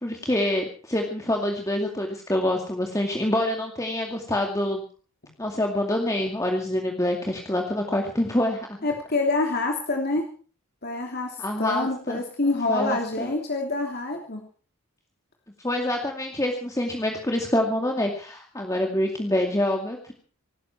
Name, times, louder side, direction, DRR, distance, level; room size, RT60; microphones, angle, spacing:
voice 1, 0.0-4.8 5.4-8.8 11.4-12.2 12.7-13.3 15.6-20.1, left 1 dB, 15° left, 1 dB, 2.3 m, -26 dB
voice 2, 8.8-10.2 10.8-14.4, left 2 dB, 50° left, 2 dB, 3.0 m, -26 dB
24.0 x 13.5 x 4.6 m, 0.41 s
head